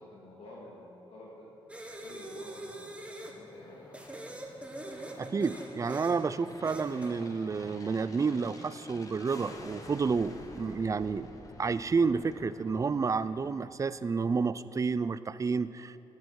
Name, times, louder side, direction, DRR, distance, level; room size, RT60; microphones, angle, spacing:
voice 1, 0.0-1.5 2.0-3.0 3.2-3.9, left 1 dB, 65° left, -4 dB, 1.9 m, -49 dB
Aircraft, 1.5-14.2, left 2 dB, 30° left, 1.2 m, -50 dB
sound 1, 1.7-3.4 3.9-6.2 6.6-7.1, right 1 dB, 10° right, 1.2 m, -43 dB
voice 2, 5.2-11.3 11.6-16.0, right 5 dB, 30° right, 16 dB, 0.3 m, -30 dB
10.5 x 10.0 x 4.7 m, 2.8 s
cardioid pair, 85°, 11 cm